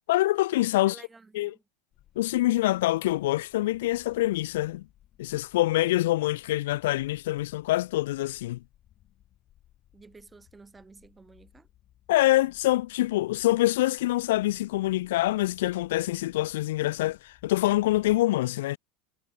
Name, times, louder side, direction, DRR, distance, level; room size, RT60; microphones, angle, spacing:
voice 1, 0.1-1.0 1.3-1.5 2.2-4.9 5.2-8.6 12.1-18.8, left 16 dB, 85° left, 0.3 m, -25 dB
voice 2, 0.8-1.6 9.9-11.7, right 4 dB, 15° right, 2.4 m, -52 dB
sound 1, 1.9-18.3, left 13 dB, 45° left, 5.1 m, -61 dB
supercardioid pair, 115°, 0 cm